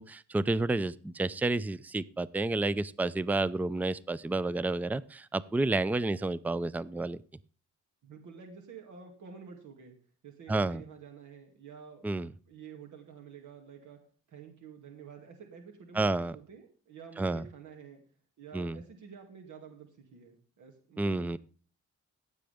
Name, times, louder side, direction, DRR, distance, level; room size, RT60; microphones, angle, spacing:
voice 1, 0.0-7.2 10.5-10.8 12.0-12.3 15.9-16.3 17.2-17.4 18.5-18.8 21.0-21.4, right 2 dB, 5° right, 18 dB, 0.4 m, -30 dB
voice 2, 8.0-9.9 10.2-12.0 12.5-14.0 14.3-18.0 18.4-21.4, right 6 dB, 85° right, 2 dB, 2.5 m, -49 dB
15.5 x 7.8 x 3.5 m, 0.41 s
cardioid pair, 120°, 30 cm